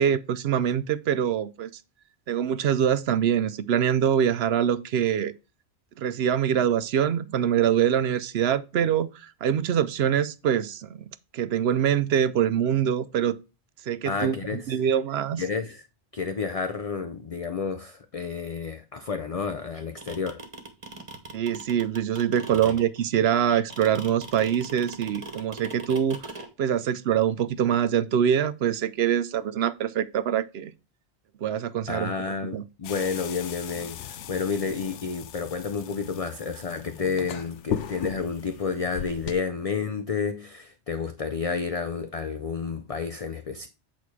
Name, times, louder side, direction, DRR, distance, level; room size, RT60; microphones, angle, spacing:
voice 1, 0.0-1.7 2.3-5.3 6.0-11.0 11.3-13.4 13.9-15.4 21.3-26.3 26.6-30.7 31.4-32.1 32.5-32.6, right 9 dB, 65° right, 0.8 m, -24 dB
voice 2, 14.1-14.8 15.4-15.8 16.1-20.4 22.6-22.7 31.9-43.7, left 5 dB, 40° left, 0.5 m, -30 dB
sound 1, 19.7-26.5, right 2 dB, 30° right, 1.5 m, -39 dB
sound 2, 32.8-39.4, left 9 dB, 85° left, 1.0 m, -37 dB
8.4 x 4.2 x 4.7 m
omnidirectional pair, 1.2 m